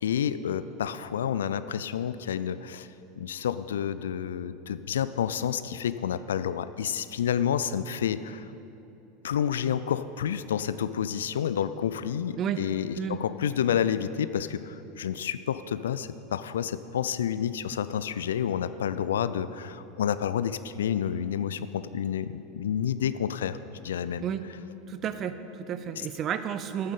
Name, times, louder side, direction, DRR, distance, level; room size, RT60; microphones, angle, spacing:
voice 1, 0.0-2.9 3.2-8.5 9.2-23.6 23.8-24.2 26.0-26.1, left 8 dB, 70° left, 14 dB, 0.4 m, -29 dB
voice 2, 24.9-26.9, right 8 dB, 35° right, 11 dB, 0.6 m, -31 dB
8.9 x 7.3 x 9.0 m, 3.0 s
figure-of-eight pair, 85°, 0 cm